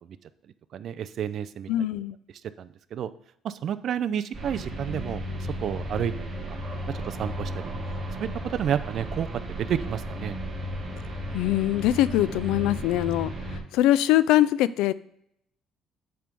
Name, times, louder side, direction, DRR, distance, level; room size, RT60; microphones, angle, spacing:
voice 1, 0.7-1.7 2.6-3.1 3.4-6.6 6.9-7.7 8.2-10.4, right 9 dB, 50° right, 14 dB, 0.4 m, -31 dB
voice 2, 1.7-2.2 11.3-14.9, left 14 dB, 90° left, 17 dB, 0.3 m, -23 dB
sound 1, 4.3-13.6, equal, 25° right, 1.5 m, -34 dB
7.6 x 3.4 x 5.3 m, 0.73 s
cardioid pair, 145°, 0 cm